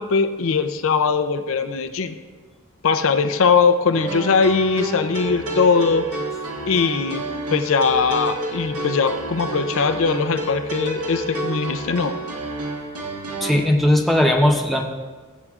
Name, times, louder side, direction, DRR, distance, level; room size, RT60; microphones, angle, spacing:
voice 1, 0.0-2.2 2.8-6.0 6.7-7.2 7.5-12.1, left 5 dB, 65° left, 9 dB, 0.5 m, -20 dB
sound 1, 3.9-13.5, right 2 dB, 85° right, 1.7 m, -29 dB
voice 2, 13.4-14.8, left 1 dB, ahead, 0 dB, 0.7 m, -17 dB
20.0 x 7.9 x 2.4 m, 1.4 s
head